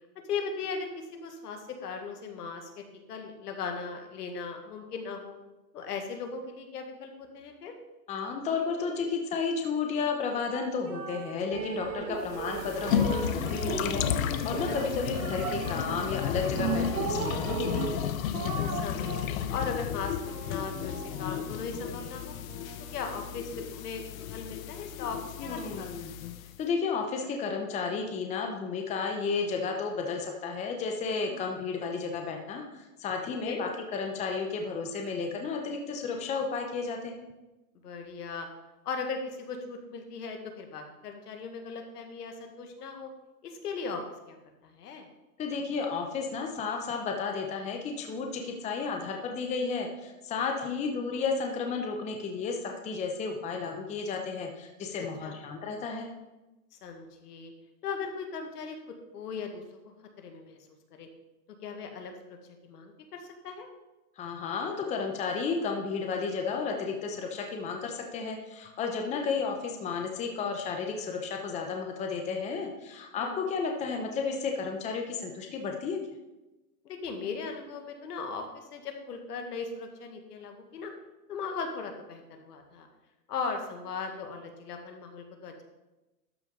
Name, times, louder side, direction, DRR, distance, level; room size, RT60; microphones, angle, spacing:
voice 1, 0.3-2.8 3.1-5.3 5.7-7.7 12.0-12.2 14.7-14.8 18.5-22.3 22.9-24.0 24.3-26.1 31.3-31.4 33.4-33.6 37.8-38.5 38.8-43.1 43.4-44.4 44.6-45.1 50.6-50.9 55.2-55.4 56.8-57.5 57.8-58.8 59.1-59.8 60.2-60.6 60.9-61.1 61.6-63.7 69.0-69.2 73.2-73.5 76.8-80.9 81.3-82.9 83.3-85.6, left 5 dB, 80° left, 4 dB, 1.8 m, -38 dB
voice 2, 8.1-18.0 25.4-26.2 26.6-37.2 45.4-56.1 64.2-76.0, left 5 dB, 15° left, 2 dB, 0.8 m, -32 dB
sound 1, 10.8-12.3 12.8-15.7 16.6-19.5 20.0-23.6, right 7 dB, 85° right, 1.0 m, -42 dB
sound 2, 11.5-17.9, right 5 dB, 60° right, 1.7 m, -36 dB
sound 3, 12.2-26.6, left 9 dB, 60° left, 0.8 m, -33 dB
12.5 x 6.2 x 3.9 m, 1.0 s
hypercardioid pair, 145°, 46 cm